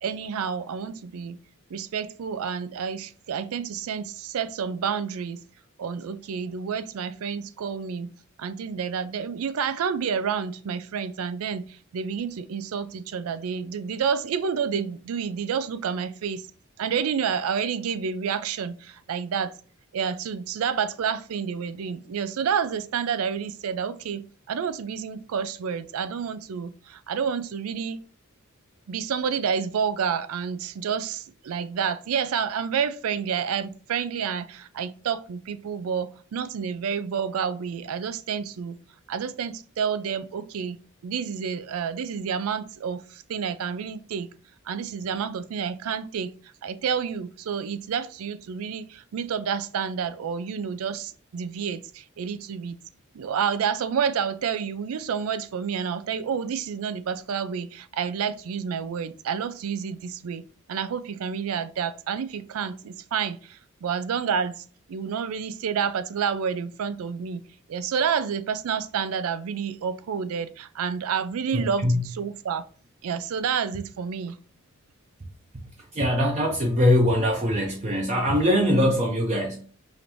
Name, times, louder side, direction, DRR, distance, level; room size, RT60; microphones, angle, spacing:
voice 1, 0.0-1.4 1.7-5.4 5.8-8.1 8.4-16.5 16.8-19.5 19.9-28.0 28.9-38.8 39.1-40.8 41.0-44.3 44.7-46.3 46.6-52.8 53.1-67.4 67.7-72.6 73.0-74.4, right 7 dB, 75° right, 0.4 m, -29 dB
voice 2, 71.5-72.0 75.5-75.7 75.9-79.6, equal, 30° right, 0.6 m, -22 dB
5.0 x 2.6 x 2.9 m
head